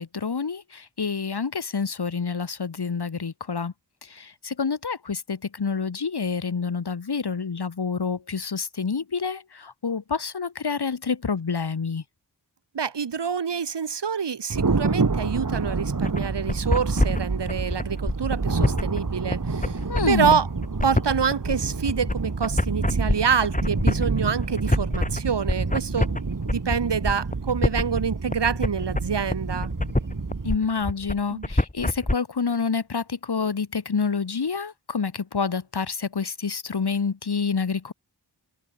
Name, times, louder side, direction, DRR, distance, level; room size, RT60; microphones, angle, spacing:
voice 1, 0.0-3.7 4.0-12.0 19.9-20.4 30.4-37.9, left 5 dB, 65° left, 2.2 m, -28 dB
voice 2, 12.7-19.8 20.1-20.5 20.8-26.1 26.5-29.7 31.3-31.5, right 6 dB, 70° right, 1.5 m, -26 dB
Thunder, 14.5-30.5, right 4 dB, 45° right, 2.7 m, -28 dB
sound 1, 16.0-32.1, left 1 dB, 20° left, 4.0 m, -26 dB
wide cardioid pair, 70°, 43 cm